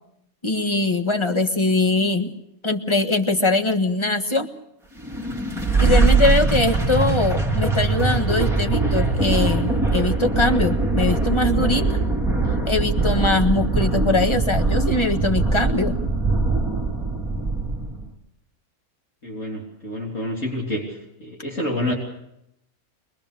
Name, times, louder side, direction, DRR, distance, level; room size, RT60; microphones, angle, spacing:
voice 1, 0.4-2.3 2.6-4.5 5.8-11.9 12.7-16.0, left 2 dB, 20° left, 6 dB, 1.5 m, -22 dB
sound 1, 5.0-18.1, right 3 dB, ahead, 2.8 m, -22 dB
voice 2, 19.2-20.9 21.2-21.9, left 1 dB, 50° left, -4 dB, 3.8 m, -28 dB
24.0 x 21.5 x 6.8 m, 0.80 s
omnidirectional pair, 1.6 m